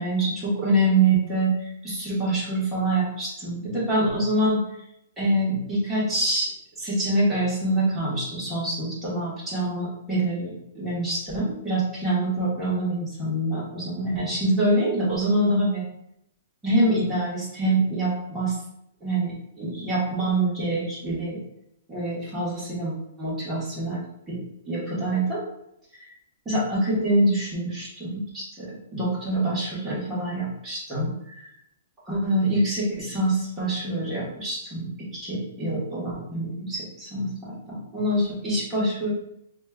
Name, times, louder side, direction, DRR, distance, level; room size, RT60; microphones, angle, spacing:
voice 1, 0.0-1.5 1.8-4.6 5.2-6.5 6.8-15.8 16.6-18.6 19.0-19.3 19.6-21.4 21.9-22.9 23.2-24.0 24.3-24.4 24.6-25.4 26.4-31.4 32.1-34.9 35.2-39.1, right 1 dB, 10° right, -8 dB, 1.3 m, -25 dB
5.2 x 2.2 x 2.3 m, 0.79 s
hypercardioid pair, 160°, 0 cm